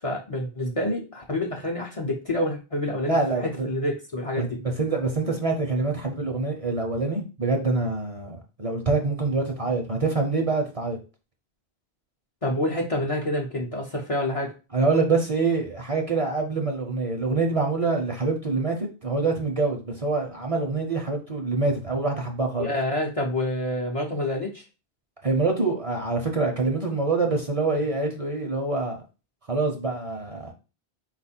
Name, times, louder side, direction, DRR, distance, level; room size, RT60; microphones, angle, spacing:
voice 1, 0.0-4.6 12.4-14.5 22.6-24.6, left 1 dB, 40° left, -1 dB, 0.7 m, -28 dB
voice 2, 3.1-3.7 4.4-11.0 14.7-22.7 25.2-29.0 29.5-30.5, right 3 dB, 35° right, 2 dB, 0.7 m, -25 dB
4.3 x 2.4 x 4.2 m, 0.32 s
omnidirectional pair, 1.1 m